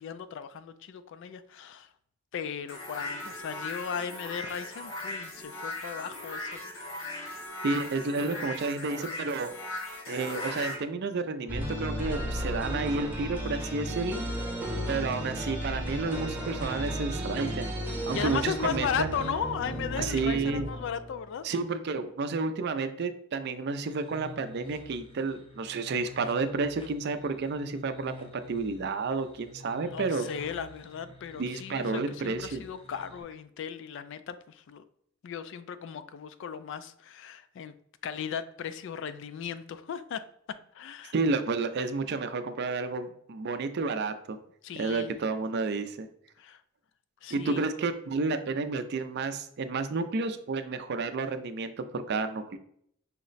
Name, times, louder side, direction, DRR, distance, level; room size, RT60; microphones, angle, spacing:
voice 1, 0.0-1.9 2.3-6.6 6.9-7.1 18.1-21.4 29.8-34.8 35.2-37.7 38.0-40.2 40.7-41.1 44.6-45.1 46.4-46.6 47.2-47.6, left 7 dB, 60° left, 13 dB, 0.3 m, -36 dB
sound 1, 2.7-10.8, left 2 dB, 85° left, 1.2 m, -38 dB
voice 2, 7.6-9.5 10.1-14.2 14.9-17.7 18.1-19.1 20.0-20.6 21.4-30.3 31.4-32.6 41.1-44.4 44.8-46.1 47.3-52.6, right 4 dB, 50° right, 9 dB, 0.4 m, -31 dB
sound 2, 11.5-21.3, equal, 10° right, 0.8 m, -34 dB
sound 3, 23.7-33.2, left 3 dB, 25° left, 0.6 m, -49 dB
5.7 x 2.1 x 3.9 m, 0.69 s
head